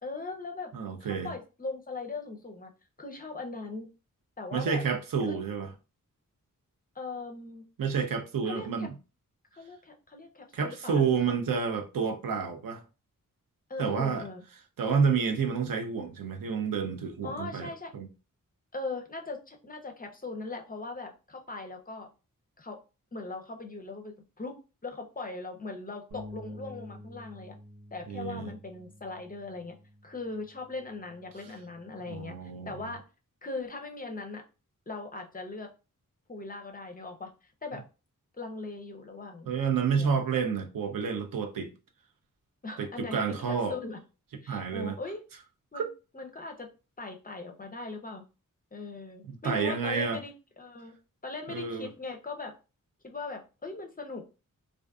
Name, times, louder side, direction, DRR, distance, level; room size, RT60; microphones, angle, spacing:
voice 1, 0.0-0.7 1.0-2.7 3.0-3.9 4.4-4.8 5.2-5.4 7.0-7.7 8.5-8.9 9.5-11.2 11.6-11.8 13.7-14.4 17.2-17.9 18.7-22.1 22.6-22.8 23.1-27.6 27.9-29.8 30.0-33.0 33.4-34.4 34.9-35.7 36.3-37.8 38.3-39.5 40.0-40.2 42.6-44.0 44.4-45.2 45.7-45.9 46.1-46.7 47.0-48.2 48.7-50.9 51.2-52.5 53.0-54.4, left 3 dB, 25° left, 0.5 m, -40 dB
voice 2, 0.7-1.3 4.5-5.7 7.8-8.9 10.5-12.8 13.8-14.2 14.8-18.1 28.1-28.5 32.1-32.9 39.5-41.7 42.8-43.7 44.5-44.9 45.7-45.8 49.4-50.2 51.5-51.9, right 6 dB, 80° right, 0.6 m, -29 dB
Bass guitar, 26.1-32.4, left 1 dB, 60° right, 1.0 m, -49 dB
2.4 x 2.4 x 2.3 m
wide cardioid pair, 100°, 33 cm